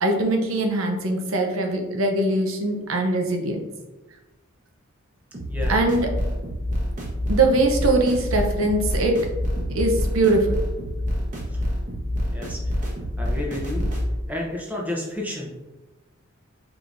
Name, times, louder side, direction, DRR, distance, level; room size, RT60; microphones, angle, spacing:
voice 1, 0.0-3.6 5.7-6.1 7.3-9.2 9.7-10.6, right 2 dB, 70° right, 3 dB, 0.7 m, -22 dB
sound 1, 5.3-14.1, equal, 35° right, 0.9 m, -27 dB
voice 2, 12.3-12.7 13.2-13.9 14.3-15.5, left 1 dB, 5° right, -2 dB, 0.7 m, -31 dB
4.7 x 3.7 x 2.6 m, 1.1 s
head